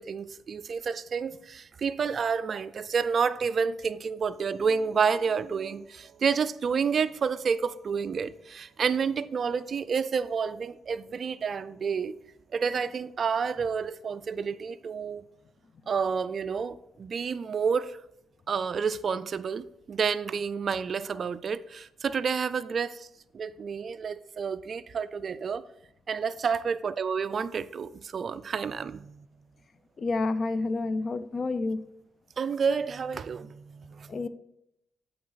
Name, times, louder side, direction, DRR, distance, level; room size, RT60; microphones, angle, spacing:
voice 1, 0.0-12.1 12.5-15.2 15.9-18.0 18.5-23.1 23.3-25.7 26.1-29.3 32.4-34.2, right 6 dB, 45° right, 0.3 m, -29 dB
voice 2, 30.0-31.8 34.1-34.3, left 3 dB, 40° left, 0.4 m, -29 dB
7.7 x 3.9 x 3.9 m
cardioid pair, 90°, 0 cm